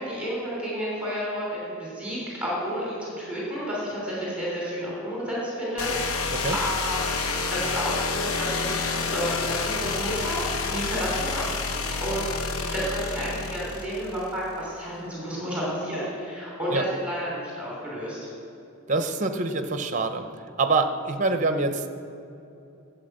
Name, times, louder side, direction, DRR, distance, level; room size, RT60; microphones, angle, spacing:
voice 1, 0.0-7.0 7.5-11.5 12.0-18.3, equal, 5° right, -5 dB, 3.0 m, -31 dB
sound 1, 5.8-14.5, left 4 dB, 80° left, 1.0 m, -29 dB
voice 2, 18.9-20.3 20.6-21.9, right 3 dB, 35° right, 8 dB, 0.7 m, -25 dB
11.5 x 8.0 x 7.7 m, 2.8 s
head